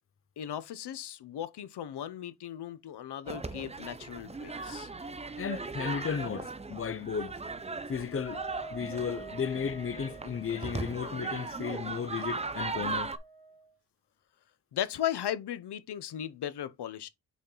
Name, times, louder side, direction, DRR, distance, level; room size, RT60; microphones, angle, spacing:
voice 1, 0.4-4.9 14.7-17.1, left 10 dB, 65° left, 0.8 m, -37 dB
sound 1, 3.2-13.2, right 3 dB, 15° right, 0.6 m, -38 dB
voice 2, 5.4-7.4 7.9-8.4 8.7-13.1, left 7 dB, 30° left, 0.5 m, -34 dB
Wind instrument woodwind instrument, 8.0-13.7, right 2 dB, 60° right, 2.3 m, -48 dB
7.0 x 4.2 x 3.8 m
cardioid pair, 110°, 42 cm